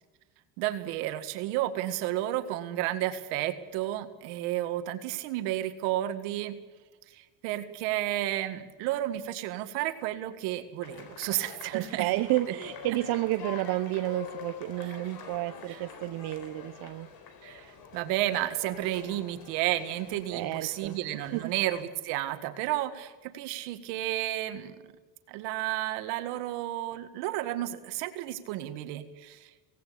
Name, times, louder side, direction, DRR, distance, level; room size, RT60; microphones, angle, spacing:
voice 1, 0.6-6.6 7.1-12.1 14.8-15.0 15.7-15.8 17.4-24.9 25.3-29.5, right 14 dB, 85° right, 9 dB, 1.9 m, -32 dB
sound 1, 10.8-21.8, left 6 dB, 60° left, 4.3 m, -46 dB
voice 2, 11.7-17.1 20.3-21.0 21.3-21.5, right 16 dB, 65° right, 9 dB, 0.9 m, -31 dB
18.0 x 17.0 x 8.6 m, 1.3 s
cardioid pair, 120°, 40 cm